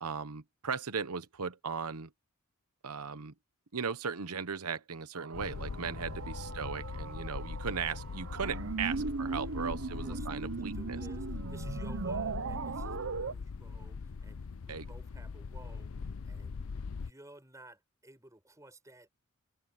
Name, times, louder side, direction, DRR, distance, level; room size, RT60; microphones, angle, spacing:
voice 1, 0.0-2.1 2.8-3.3 3.7-11.0 14.7-14.9, right 6 dB, 85° right, 1.0 m, -37 dB
sound 1, 5.1-13.3, right 4 dB, 60° right, 0.6 m, -39 dB
sound 2, 5.3-17.1, left 5 dB, 65° left, 0.5 m, -41 dB
voice 2, 9.0-16.6 16.9-19.1, right 1 dB, 15° right, 5.6 m, -56 dB
head